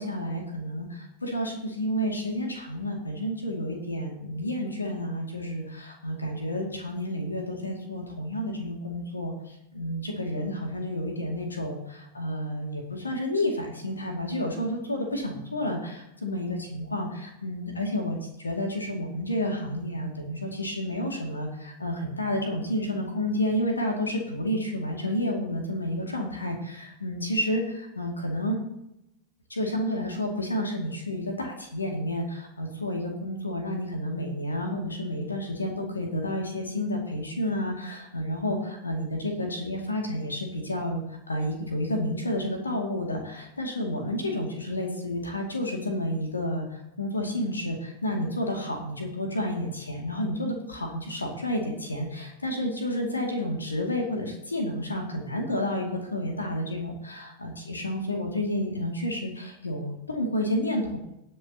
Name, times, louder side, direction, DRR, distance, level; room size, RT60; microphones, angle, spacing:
voice 1, 0.0-28.6 29.5-61.0, left 1 dB, 80° left, 1 dB, 2.3 m, -30 dB
19.0 x 7.2 x 2.9 m, 0.84 s
figure-of-eight pair, 90°, 0 cm